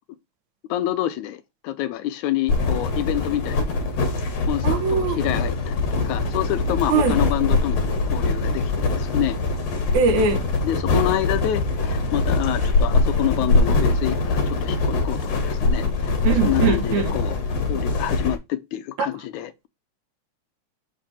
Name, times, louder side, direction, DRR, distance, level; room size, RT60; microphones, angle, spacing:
voice 1, 0.7-3.8 4.4-9.4 10.6-16.2 16.4-17.4 17.7-19.7, left 13 dB, 80° left, 2.1 m, -27 dB
sound 1, 2.5-18.4, left 3 dB, 60° left, 2.8 m, -23 dB
voice 2, 4.6-5.2 6.9-7.2 9.9-10.5 16.2-17.1 19.0-19.1, right 5 dB, 75° right, 2.6 m, -21 dB
6.8 x 4.7 x 4.4 m
omnidirectional pair, 3.4 m